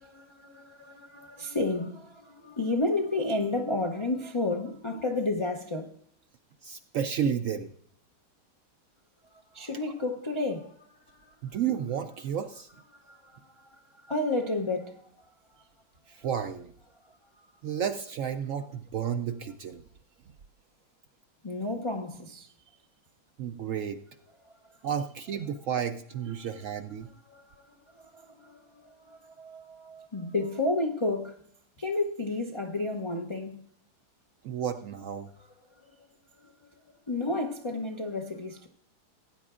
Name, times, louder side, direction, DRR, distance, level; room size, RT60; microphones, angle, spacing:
voice 1, 0.0-5.9 9.3-11.3 12.9-15.2 15.5-15.6 21.4-22.5 26.4-26.5 27.3-31.4 31.8-33.6 35.9-36.1 36.4-36.5 37.1-38.7, left 2 dB, 40° left, 0.4 m, -32 dB
voice 2, 6.6-7.7 11.4-12.7 16.1-16.7 17.6-19.8 23.4-24.0 24.8-27.1 34.4-35.3, right 8 dB, 70° right, 0.8 m, -32 dB
17.5 x 9.6 x 2.4 m
omnidirectional pair, 1.8 m